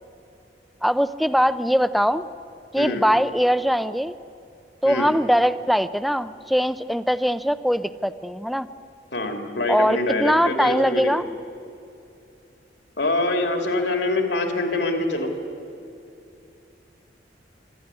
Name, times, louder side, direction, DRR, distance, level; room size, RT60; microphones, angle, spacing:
voice 1, 0.8-2.2 2.7-4.1 4.8-8.7 9.7-11.2, equal, ahead, 13 dB, 0.5 m, -21 dB
voice 2, 9.1-11.1 13.0-15.3, left 2 dB, 80° left, 4 dB, 2.8 m, -25 dB
25.0 x 12.5 x 9.7 m, 2.7 s
head